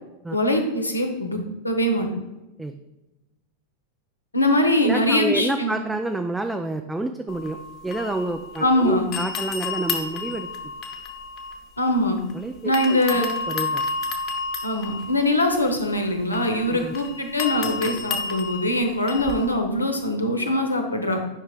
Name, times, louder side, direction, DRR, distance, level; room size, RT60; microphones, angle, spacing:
voice 1, 0.3-1.4 1.6-2.1 4.3-5.8 8.6-9.1 11.8-12.2 12.6-13.3 14.6-21.2, left 1 dB, 85° left, 4 dB, 1.0 m, -22 dB
voice 2, 4.8-7.6 7.8-10.5 12.3-13.8 16.7-16.9, right 2 dB, 5° right, 5 dB, 0.4 m, -29 dB
sound 1, 7.3-8.8 9.1-12.3 12.7-19.5, left 4 dB, 35° left, 0.9 m, -31 dB
11.0 x 5.5 x 2.4 m, 1.0 s
figure-of-eight pair, 90°, 0 cm